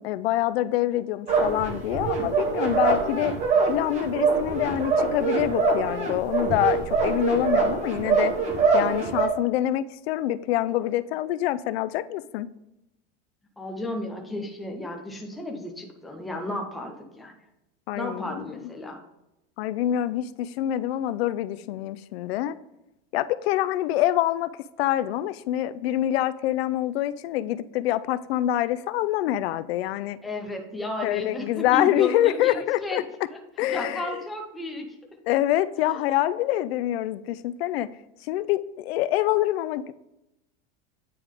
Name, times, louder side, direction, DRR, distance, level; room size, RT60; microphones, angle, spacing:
voice 1, 0.0-3.3 3.7-8.3 8.7-12.5 17.9-18.5 19.6-22.6 23.1-24.5 24.8-30.2 31.0-33.0 33.6-34.2 35.2-37.9 38.3-39.9, left 13 dB, 90° left, 15 dB, 0.5 m, -26 dB
sound 1, 1.3-9.3, right 4 dB, 20° right, 0.8 m, -24 dB
voice 2, 13.6-17.3 17.9-19.0 30.2-33.0 33.3-33.4 33.7-34.9 35.9-36.0, left 2 dB, ahead, 1 dB, 0.4 m, -33 dB
9.2 x 3.4 x 3.5 m, 0.92 s
supercardioid pair, 170°, 30 cm